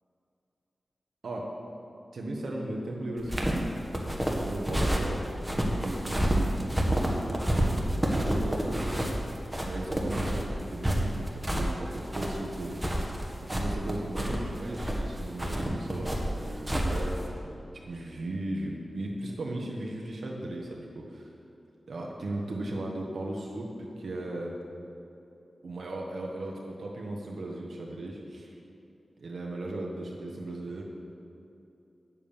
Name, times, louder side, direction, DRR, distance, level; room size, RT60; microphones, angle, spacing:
voice 1, 2.1-3.5 4.4-5.2 5.7-7.2 8.1-9.2 9.6-17.2 17.7-21.3 21.9-24.6 25.6-28.5 29.2-30.8, right 1 dB, 80° right, -1 dB, 1.3 m, -36 dB
sound 1, 3.2-17.3, equal, 10° right, 1.6 m, -29 dB
8.4 x 7.5 x 7.0 m, 2.8 s
wide cardioid pair, 70°, 0 cm